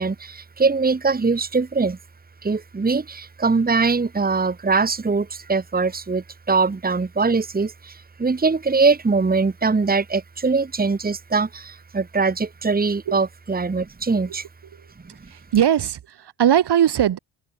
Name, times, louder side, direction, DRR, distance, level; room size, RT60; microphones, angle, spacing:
voice 1, 0.0-2.0 2.4-14.4, right 4 dB, 20° right, 2.1 m, -22 dB
voice 2, 15.3-17.2, right 10 dB, 75° right, 4.7 m, -19 dB
cardioid pair, 120°, 40 cm